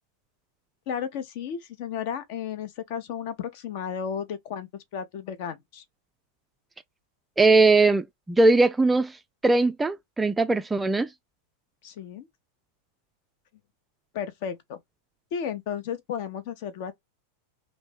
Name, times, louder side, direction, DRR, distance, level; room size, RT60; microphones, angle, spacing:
voice 1, 0.9-5.8 11.8-12.3 14.1-14.8 15.3-16.9, left 8 dB, 50° left, 0.7 m, -33 dB
voice 2, 7.4-9.1 9.4-11.1, right 3 dB, 10° right, 0.3 m, -20 dB
3.0 x 2.6 x 3.4 m
figure-of-eight pair, 90°, 0 cm